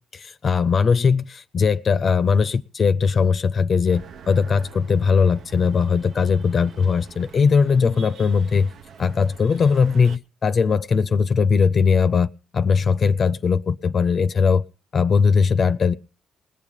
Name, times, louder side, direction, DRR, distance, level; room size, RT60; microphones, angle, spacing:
voice 1, 0.1-8.7 9.0-14.6 14.9-15.9, left 5 dB, 45° left, 0.6 m, -19 dB
sound 1, 3.9-10.2, right 7 dB, 65° right, 0.7 m, -45 dB
20.0 x 7.2 x 6.7 m
cardioid pair, 90°, 0 cm